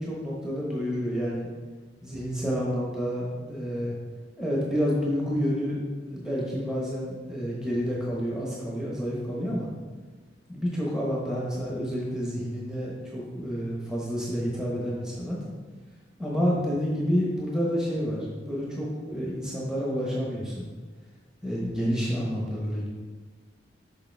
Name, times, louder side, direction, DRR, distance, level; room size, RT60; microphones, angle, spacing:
voice 1, 0.0-1.5 2.0-4.0 4.4-5.8 6.1-9.7 10.5-15.4 16.2-20.7 21.4-22.9, equal, 5° right, -5 dB, 1.1 m, -29 dB
6.7 x 5.6 x 3.4 m, 1.4 s
head